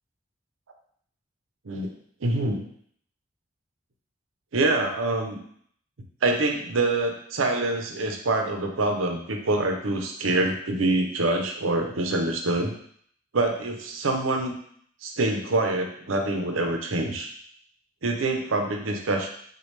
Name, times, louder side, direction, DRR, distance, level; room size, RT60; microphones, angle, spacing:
voice 1, 2.2-2.7 4.5-5.4 6.2-12.7 13.3-14.5 15.0-17.3 18.0-19.3, right 2 dB, 85° right, 4 dB, 0.7 m, -25 dB
6.3 x 2.3 x 3.2 m, 0.62 s
head